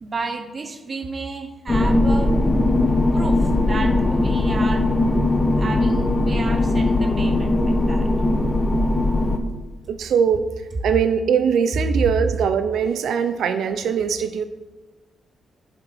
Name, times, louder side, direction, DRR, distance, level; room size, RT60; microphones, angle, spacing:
voice 1, 0.0-2.3 3.1-4.8 5.6-8.1 11.8-11.9, right 3 dB, 30° right, 6 dB, 1.0 m, -32 dB
sound 1, 1.7-9.4, left 2 dB, 20° left, 0.8 m, -19 dB
voice 2, 9.9-10.5 10.8-14.4, right 7 dB, 75° right, 9 dB, 0.6 m, -21 dB
10.0 x 5.2 x 5.9 m, 1.2 s
cardioid pair, 130°, 0 cm